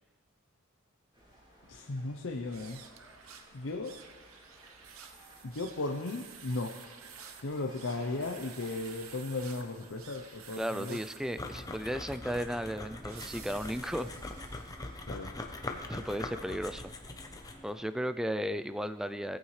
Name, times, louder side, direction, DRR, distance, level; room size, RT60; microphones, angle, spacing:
sound 1, 1.1-18.0, equal, 25° right, 3.9 m, -59 dB
voice 1, 1.7-2.8 3.5-4.0 5.4-6.7 7.4-11.0 15.1-15.3, left 2 dB, 65° left, 2 dB, 0.7 m, -36 dB
sound 2, 2.4-14.9, right 7 dB, 85° right, 0.8 m, -52 dB
voice 2, 10.6-14.1 15.9-16.9 17.6-19.4, equal, 5° right, 12 dB, 0.3 m, -35 dB
sound 3, 11.4-17.7, left 2 dB, 20° left, 0.7 m, -42 dB
16.5 x 8.8 x 3.2 m, 1.3 s
head